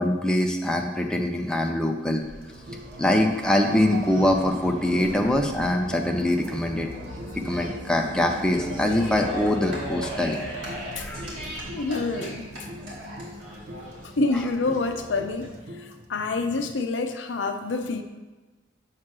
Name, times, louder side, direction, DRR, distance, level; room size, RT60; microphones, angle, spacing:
voice 1, 0.0-2.2 3.0-6.9 7.4-10.4 11.0-11.3, left 1 dB, 5° left, 2 dB, 0.4 m, -23 dB
sound 1, 2.2-15.5, equal, 85° right, 2.3 m, -39 dB
sound 2, 2.4-16.0, equal, 55° right, 0.6 m, -39 dB
voice 2, 11.7-12.4 14.2-15.5 16.1-18.0, left 3 dB, 70° left, 7 dB, 0.6 m, -27 dB
7.5 x 3.0 x 6.0 m, 1.2 s
head